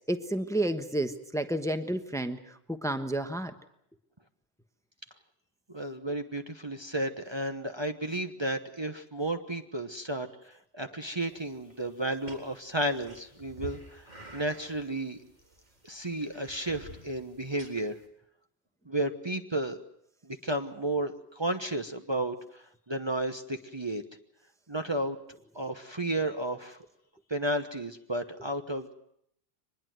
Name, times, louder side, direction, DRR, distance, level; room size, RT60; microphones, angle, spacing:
voice 1, 0.1-3.5, right 1 dB, 5° left, 8 dB, 1.2 m, -31 dB
voice 2, 5.7-15.2 15.8-18.0 18.9-19.8 20.2-24.0 24.7-25.2 25.5-26.8 27.3-28.9, right 1 dB, 25° right, 5 dB, 1.1 m, -33 dB
sound 1, 11.2-18.1, right 2 dB, 45° right, 4.0 m, -50 dB
24.0 x 20.5 x 7.8 m, 0.72 s
omnidirectional pair, 1.1 m